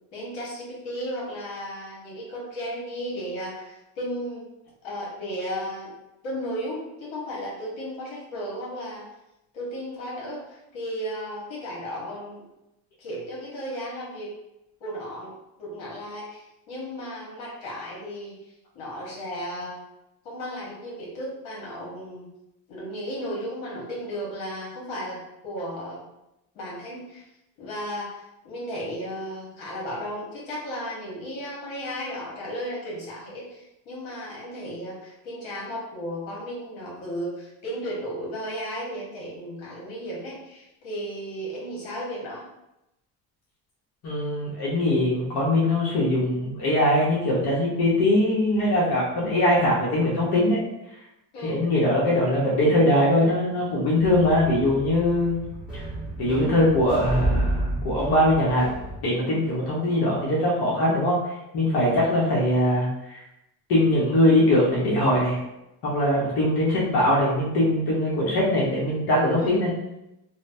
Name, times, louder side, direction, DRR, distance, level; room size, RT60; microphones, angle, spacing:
voice 1, 0.1-4.4 4.8-5.9 6.2-9.0 9.5-12.4 13.0-14.3 14.8-18.4 18.7-19.8 20.2-22.3 22.7-25.2 25.4-26.0 26.5-27.2 27.6-42.4 51.3-51.6 69.4-69.6, equal, 70° left, -5 dB, 1.3 m, -34 dB
voice 2, 44.0-50.6 51.4-55.4 55.7-55.8 56.2-58.7 59.0-61.2 61.5-63.2 63.7-65.4 65.8-69.7, left 1 dB, 50° left, -5 dB, 1.0 m, -22 dB
sound 1, 54.0-59.0, right 1 dB, ahead, 1.1 m, -30 dB
3.0 x 2.1 x 2.6 m, 0.89 s
supercardioid pair, 85°, 49 cm